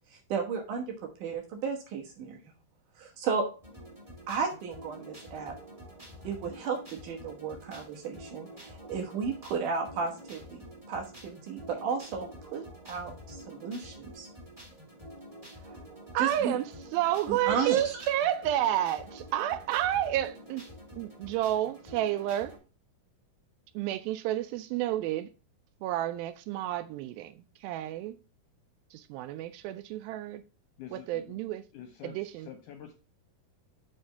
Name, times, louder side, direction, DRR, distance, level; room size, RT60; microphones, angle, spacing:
voice 1, 0.3-2.4 3.0-3.5 4.3-5.5 6.2-10.6 10.9-14.3 16.2-16.6 17.3-18.1, right 5 dB, 65° right, 2.5 m, -34 dB
sound 1, 3.6-22.6, equal, 15° right, 1.3 m, -48 dB
voice 2, 16.1-16.7 16.9-20.7 21.0-22.6 23.8-25.3 25.8-28.2 28.9-30.4 30.9-31.6 32.0-32.5, right 12 dB, 85° right, 2.3 m, -30 dB
voice 3, 30.8-31.4 31.7-32.2 32.5-32.9, left 9 dB, 75° left, 1.9 m, -46 dB
6.7 x 3.5 x 5.5 m
omnidirectional pair, 4.3 m